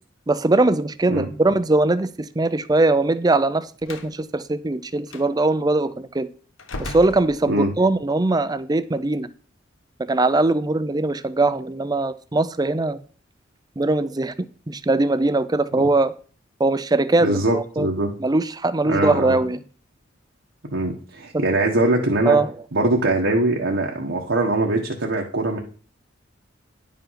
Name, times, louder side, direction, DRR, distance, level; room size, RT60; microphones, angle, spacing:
voice 1, 0.3-6.3 6.8-9.3 10.1-13.0 13.8-14.3 14.7-16.1 16.6-17.9 18.2-19.6 21.3-21.4 22.3-22.5, right 2 dB, 20° right, 13 dB, 0.5 m, -21 dB
Slam, 3.8-4.1 5.1-5.3 6.6-7.9, left 2 dB, 90° left, 1.2 m, -36 dB
voice 2, 17.2-18.1 18.9-19.4 20.7-22.4 22.7-25.6, right 2 dB, 75° right, -1 dB, 1.3 m, -22 dB
10.5 x 5.6 x 5.7 m, 0.40 s
head